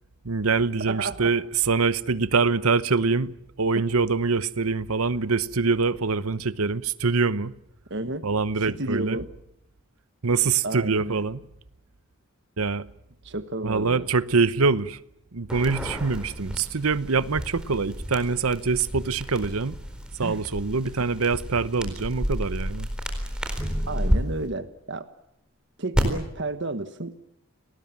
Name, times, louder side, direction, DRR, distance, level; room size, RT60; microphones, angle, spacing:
voice 1, 0.2-7.5 8.2-9.2 10.2-11.4 12.6-12.9 13.6-15.0 15.3-19.8 20.2-22.9, right 4 dB, 85° right, 1.0 m, -24 dB
voice 2, 0.9-1.3 3.7-3.8 7.9-8.2 8.7-9.3 10.6-11.2 13.2-14.1 20.2-20.4 23.9-25.1 25.8-27.1, right 2 dB, 55° right, 1.4 m, -31 dB
sound 1, 15.5-24.2 25.9-26.0, equal, 5° right, 4.1 m, -31 dB
30.0 x 19.5 x 7.4 m
head